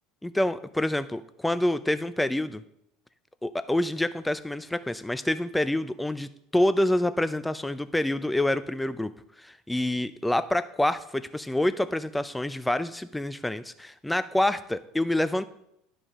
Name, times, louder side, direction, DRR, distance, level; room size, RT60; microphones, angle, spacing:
voice 1, 0.2-2.6 3.4-9.1 9.4-15.4, left 1 dB, 5° left, 13 dB, 0.5 m, -27 dB
11.0 x 5.1 x 3.7 m, 0.77 s
hypercardioid pair, 70°, 0 cm